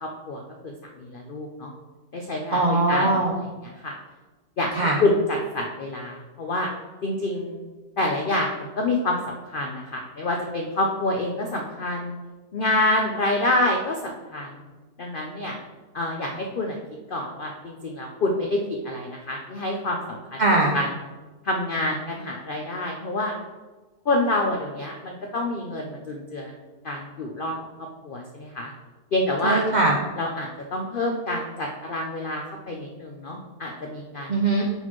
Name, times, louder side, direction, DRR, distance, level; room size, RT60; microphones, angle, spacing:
voice 1, 0.0-1.7 2.1-3.9 4.6-6.7 7.0-7.6 8.0-12.1 12.5-14.6 15.0-15.6 15.9-16.8 17.1-20.4 20.7-20.9 21.4-23.3 24.1-26.5 26.8-27.6 28.0-28.7 29.1-29.6 30.2-34.3, left 2 dB, 65° left, 1 dB, 0.5 m, -27 dB
voice 2, 2.5-3.3 4.7-5.0 20.4-20.8 29.4-30.0 34.3-34.6, right 2 dB, 55° right, -1 dB, 0.5 m, -20 dB
8.8 x 4.2 x 3.1 m, 1.2 s
omnidirectional pair, 1.7 m